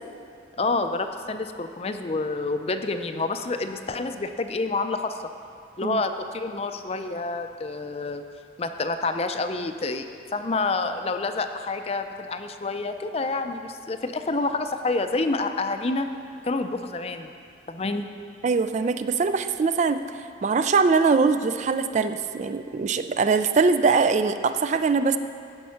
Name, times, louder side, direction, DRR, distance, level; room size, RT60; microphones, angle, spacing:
voice 1, 0.6-5.2 5.8-8.2 8.6-10.1 10.3-16.1 16.4-17.3 17.7-18.1, left 3 dB, 35° left, 8 dB, 0.5 m, -28 dB
voice 2, 18.4-20.0 20.4-25.2, right 4 dB, 40° right, 10 dB, 0.3 m, -22 dB
15.5 x 5.4 x 5.7 m, 2.3 s
head